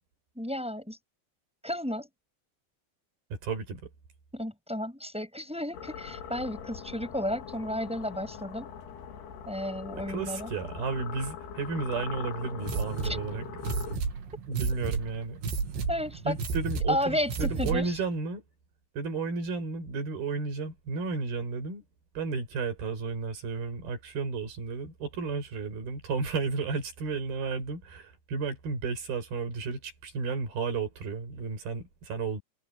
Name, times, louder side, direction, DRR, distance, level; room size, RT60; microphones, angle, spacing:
voice 1, 0.4-1.0 1.6-2.1 4.3-8.7 9.5-10.5 13.0-13.2 15.9-16.3 16.9-18.0, equal, ahead, 6.8 m, -32 dB
voice 2, 3.3-3.9 9.9-13.5 14.5-15.4 16.3-18.4 19.0-21.8 22.2-32.4, right 4 dB, 60° right, 7.4 m, -33 dB
sound 1, 5.7-14.0, left 8 dB, 70° left, 4.6 m, -42 dB
sound 2, 12.6-18.0, right 4 dB, 85° right, 5.3 m, -32 dB
omnidirectional pair, 4.8 m